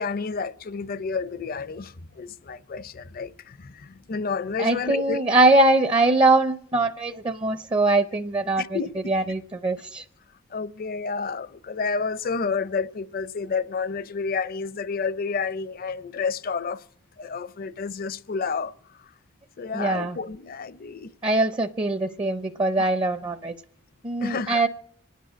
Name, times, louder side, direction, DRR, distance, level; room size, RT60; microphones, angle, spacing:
voice 1, 0.0-5.5 8.6-8.9 10.5-16.8 17.2-18.7 19.6-21.1 24.2-24.6, left 5 dB, 50° left, 0.5 m, -30 dB
voice 2, 4.6-8.8 9.1-10.1 19.7-20.2 21.2-23.5 24.0-24.7, right 2 dB, 25° right, 0.5 m, -22 dB
25.0 x 10.5 x 5.0 m
head